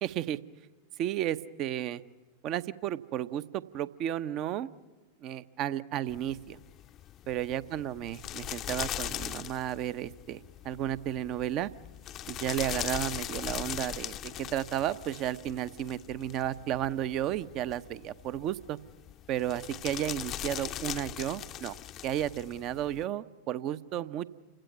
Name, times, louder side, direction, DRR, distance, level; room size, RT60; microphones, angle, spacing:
voice 1, 0.0-0.4 1.0-2.0 2.4-4.7 5.2-6.6 7.3-11.7 12.3-18.8 19.3-21.7 22.0-24.3, right 11 dB, 40° right, 14 dB, 0.9 m, -33 dB
sound 1, 6.1-23.0, left 12 dB, 30° left, 0.7 m, -40 dB
29.0 x 17.0 x 9.4 m, 1.3 s
figure-of-eight pair, 90°, 0 cm